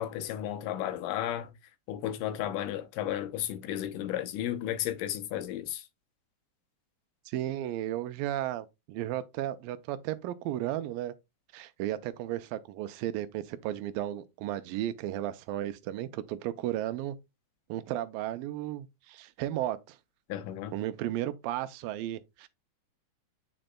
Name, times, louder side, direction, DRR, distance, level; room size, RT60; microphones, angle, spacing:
voice 1, 0.0-1.5 1.9-5.8 20.3-20.8, left 11 dB, 80° left, 2.3 m, -33 dB
voice 2, 7.3-11.1 11.5-17.2 17.7-20.0 20.7-22.5, right 13 dB, 90° right, 2.4 m, -34 dB
8.7 x 5.1 x 2.2 m
omnidirectional pair, 4.0 m